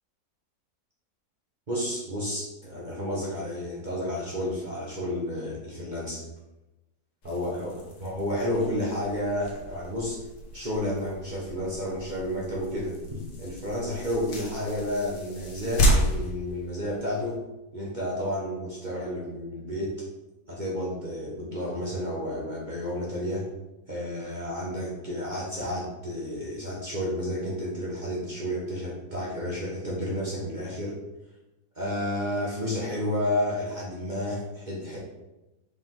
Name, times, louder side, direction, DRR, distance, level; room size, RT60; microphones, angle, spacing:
voice 1, 1.7-6.3 7.2-10.2 10.5-17.4 17.7-20.0 20.5-23.5 23.9-30.9 31.7-35.0, left 1 dB, 30° right, -5 dB, 1.3 m, -31 dB
sound 1, 7.2-17.3, equal, 70° left, 1.7 m, -32 dB
5.1 x 5.0 x 3.8 m, 1.0 s
omnidirectional pair, 1.8 m